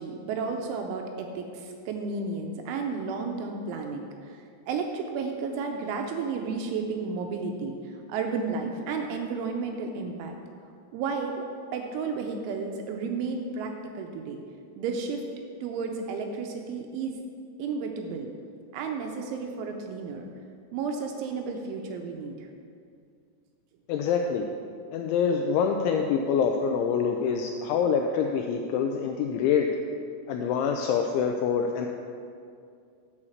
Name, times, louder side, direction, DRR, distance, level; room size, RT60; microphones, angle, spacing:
voice 1, 0.0-10.4 10.9-11.5 11.7-14.4 14.8-15.2 15.6-17.2 17.6-18.4 18.7-20.3 20.7-22.4, right 4 dB, 85° right, 3 dB, 2.9 m, -32 dB
voice 2, 23.9-24.5 24.9-29.7 30.3-31.9, left 6 dB, 85° left, 3 dB, 2.7 m, -25 dB
9.6 x 4.9 x 7.1 m, 2.3 s
omnidirectional pair, 5.8 m